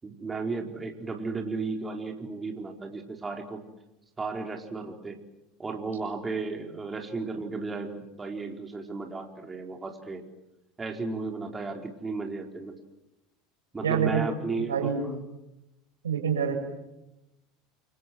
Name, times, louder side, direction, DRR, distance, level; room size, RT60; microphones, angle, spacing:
voice 1, 0.0-3.6 4.2-5.2 5.6-10.2 10.8-12.7 13.7-14.9, right 3 dB, 20° right, 2 dB, 4.6 m, -34 dB
voice 2, 13.8-14.3 14.7-15.1 16.0-16.6, right 7 dB, 90° right, 3 dB, 6.9 m, -26 dB
29.0 x 25.0 x 7.8 m, 0.92 s
hypercardioid pair, 85°, 0 cm